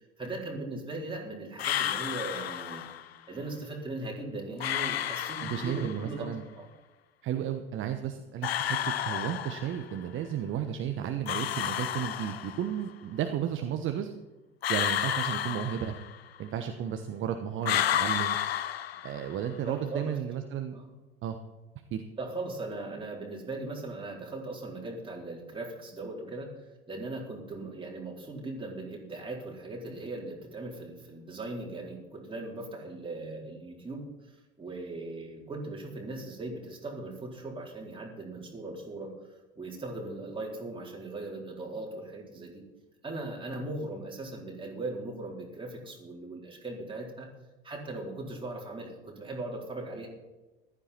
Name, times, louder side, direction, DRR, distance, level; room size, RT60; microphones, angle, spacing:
voice 1, 0.0-2.9 3.3-6.7 19.6-20.1 20.7-20.9 22.2-26.5 26.9-39.1 39.6-42.6 43.0-47.3 47.6-50.1, right 2 dB, 15° right, -2 dB, 4.1 m, -39 dB
sound 1, 1.6-3.1 4.6-6.1 8.4-10.0 11.3-12.8 14.6-16.4 17.6-19.5, left 10 dB, 75° left, 0.6 m, -31 dB
voice 2, 5.4-6.4 7.2-8.8 9.0-14.1 14.7-15.9 16.4-18.4 19.0-20.7 21.2-21.4 21.9-22.0, right 9 dB, 40° right, 7 dB, 1.1 m, -33 dB
15.0 x 12.5 x 4.4 m, 1.1 s
figure-of-eight pair, 65°, 31 cm